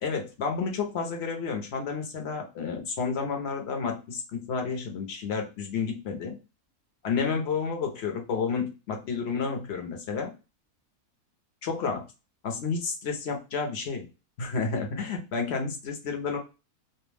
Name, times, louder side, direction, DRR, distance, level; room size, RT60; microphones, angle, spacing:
voice 1, 0.0-6.4 7.0-10.3 11.6-12.0 12.4-14.1 14.4-16.4, left 5 dB, 60° left, 3 dB, 0.9 m, -30 dB
2.5 x 2.2 x 3.2 m, 0.30 s
omnidirectional pair, 1.4 m